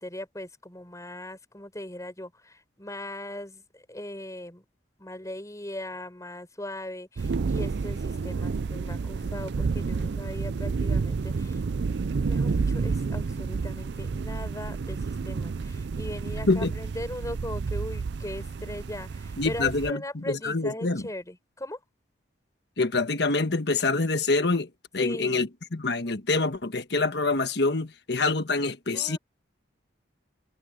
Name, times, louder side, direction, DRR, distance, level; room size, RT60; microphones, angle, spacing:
voice 1, 0.0-4.6 5.0-11.6 12.2-21.8 25.0-25.5 28.9-29.2, left 1 dB, 20° left, 6.5 m, -39 dB
sound 1, 7.2-19.9, right 4 dB, 65° right, 0.4 m, -30 dB
voice 2, 19.4-21.0 22.8-29.2, left 3 dB, 65° left, 1.5 m, -26 dB
head